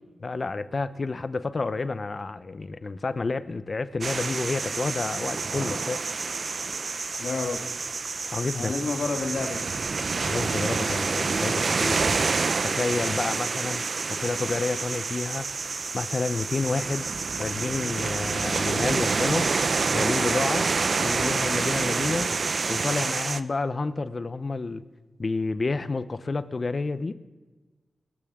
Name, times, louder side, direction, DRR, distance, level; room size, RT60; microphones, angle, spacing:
voice 1, 0.2-6.0 8.3-8.7 10.2-13.8 14.1-15.5 15.9-17.1 17.4-19.5 19.9-20.7 21.0-22.3 22.7-24.8 25.2-27.1, left 3 dB, 45° left, 13 dB, 0.7 m, -29 dB
sound 1, 4.0-23.4, right 4 dB, 55° right, 0.5 m, -28 dB
voice 2, 7.2-7.7 8.5-10.1, left 3 dB, 75° left, 4 dB, 1.7 m, -31 dB
21.5 x 14.0 x 3.7 m, 1.3 s
cardioid pair, 70°, 0 cm